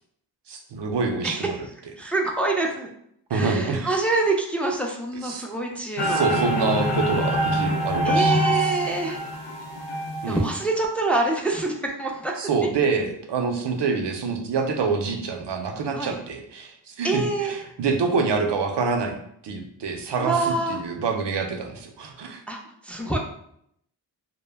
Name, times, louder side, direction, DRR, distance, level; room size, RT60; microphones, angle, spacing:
voice 1, 0.5-1.5 2.0-2.1 3.3-3.9 5.2-5.4 6.0-8.6 10.2-10.4 12.4-19.2 19.4-22.4, right 4 dB, 80° right, 4 dB, 0.6 m, -26 dB
voice 2, 2.0-2.9 3.3-6.3 8.0-9.2 10.3-12.4 15.9-16.2 17.0-17.6 20.2-20.8 22.5-22.6 22.8-23.2, right 2 dB, 5° left, 0 dB, 0.4 m, -26 dB
sound 1, 6.0-10.5, right 1 dB, 80° left, 0.6 m, -24 dB
2.1 x 2.1 x 3.3 m, 0.70 s
cardioid pair, 45°, 41 cm